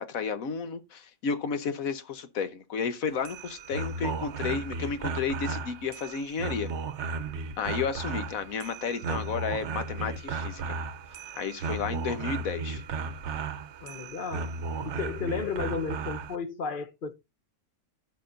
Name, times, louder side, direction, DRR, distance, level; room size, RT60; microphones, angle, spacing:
voice 1, 0.0-6.7 7.6-10.8 11.3-12.8, left 5 dB, 75° left, 1.3 m, -32 dB
sound 1, 3.1-16.4, right 4 dB, 60° right, 1.0 m, -35 dB
voice 2, 13.8-14.5 14.8-17.1, left 5 dB, 40° left, 1.0 m, -33 dB
15.5 x 5.8 x 2.6 m
omnidirectional pair, 1.5 m